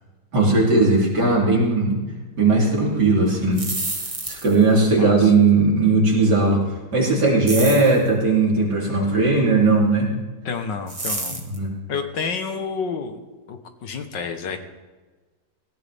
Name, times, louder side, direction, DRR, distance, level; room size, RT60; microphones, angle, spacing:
voice 1, 0.3-2.0 2.4-3.6 4.3-6.6 6.9-10.1 11.3-11.7, right 3 dB, 60° right, -3 dB, 3.9 m, -18 dB
sound 1, 3.4-4.7 7.5-8.0 10.9-11.6, right 2 dB, 20° right, 1.5 m, -29 dB
voice 2, 4.8-5.3 7.5-7.9 10.5-11.4 11.9-13.2 13.5-14.6, left 5 dB, 70° left, 6 dB, 1.9 m, -30 dB
18.5 x 17.5 x 3.6 m, 1.3 s
omnidirectional pair, 2.0 m